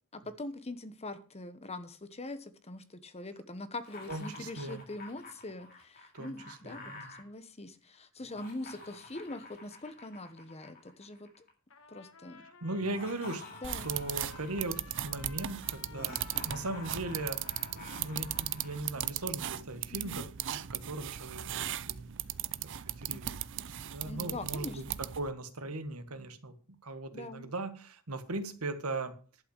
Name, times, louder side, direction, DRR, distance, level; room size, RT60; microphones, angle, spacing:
voice 1, 0.1-11.4 11.9-12.4 13.6-14.0 17.8-17.9 19.9-20.3 23.1-23.4 24.1-25.0 27.1-27.5, left 2 dB, 30° left, 11 dB, 1.1 m, -43 dB
Laughter, 3.8-7.2 8.2-11.5 12.7-14.8 15.9-18.8, left 2 dB, 45° left, 3.6 m, -49 dB
voice 2, 4.1-4.8 6.1-7.1 12.6-13.4 13.8-22.1 22.6-24.8 25.2-29.1, right 2 dB, 80° right, 9 dB, 1.6 m, -39 dB
Trumpet, 11.7-18.4, left 5 dB, 60° left, 1.5 m, -55 dB
sound 1, 13.6-25.3, right 12 dB, 55° right, 0.6 m, -38 dB
11.5 x 5.7 x 8.0 m, 0.39 s
head